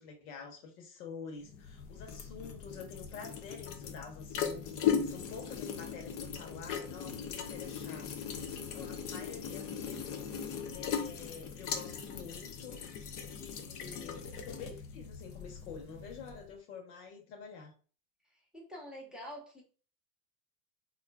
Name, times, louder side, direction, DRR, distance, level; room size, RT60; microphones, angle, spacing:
voice 1, 0.0-8.1 8.4-17.7, left 5 dB, 70° left, 3 dB, 1.1 m, -48 dB
Water Down Drain, 1.5-16.5, left 7 dB, 30° left, 0.4 m, -38 dB
voice 2, 18.2-19.6, equal, ahead, -3 dB, 0.8 m, -47 dB
3.6 x 2.5 x 2.3 m, 0.40 s
hypercardioid pair, 105°, 47 cm